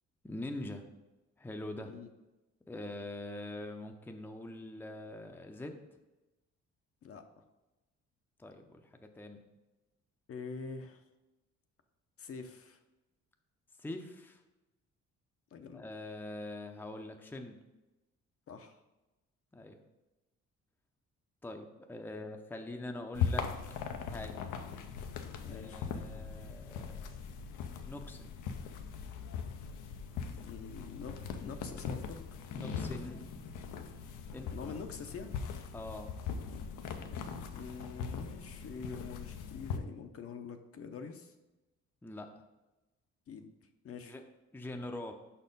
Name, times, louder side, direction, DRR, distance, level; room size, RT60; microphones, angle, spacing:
voice 1, 0.2-0.8 1.4-1.9 2.7-5.8 8.4-9.4 13.8-14.4 15.7-17.6 19.5-19.8 21.4-23.5 23.9-24.4 25.4-27.0 27.9-28.3 32.5-33.2 34.3-34.5 35.7-36.1 42.0-42.3 44.1-44.2 44.5-45.1, left 1 dB, 5° left, 4 dB, 0.6 m, -43 dB
voice 2, 10.3-11.0 12.2-12.8 15.5-15.8 18.5-18.8 25.4-25.9 30.4-32.2 34.5-35.4 37.5-41.3 43.3-44.1, left 5 dB, 50° left, 6 dB, 0.7 m, -45 dB
sound 1, 23.1-39.8, left 6 dB, 85° left, 0.6 m, -40 dB
5.4 x 4.4 x 5.2 m, 1.0 s
cardioid pair, 90°, 30 cm